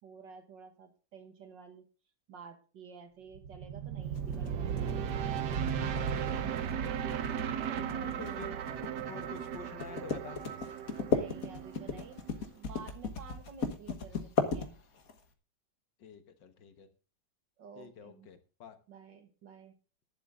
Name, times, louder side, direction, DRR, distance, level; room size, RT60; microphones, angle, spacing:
voice 1, 0.0-1.8 2.3-5.2 7.7-9.1 11.0-14.7 17.6-18.3 18.9-19.7, right 6 dB, 90° right, 7 dB, 2.4 m, -51 dB
sound 1, 3.3-12.5, right 8 dB, 70° right, 1.5 m, -36 dB
sound 2, 4.2-15.2, left 5 dB, 55° left, 1.8 m, -36 dB
voice 2, 8.0-8.6 9.1-10.4 16.0-16.9 17.8-18.8, left 7 dB, 80° left, 8 dB, 2.0 m, -48 dB
11.5 x 11.0 x 3.7 m, 0.35 s
omnidirectional pair, 1.9 m